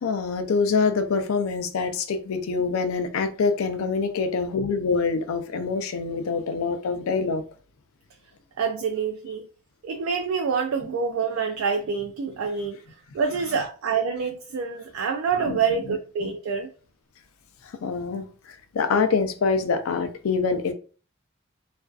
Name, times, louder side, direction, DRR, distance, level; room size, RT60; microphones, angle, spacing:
voice 1, 0.0-7.4 15.4-15.6 15.9-16.0 17.8-20.7, left 4 dB, 85° left, 0.4 m, -25 dB
voice 2, 8.6-9.5 9.8-16.7, right 6 dB, 75° right, 0.3 m, -27 dB
2.4 x 2.3 x 2.3 m
head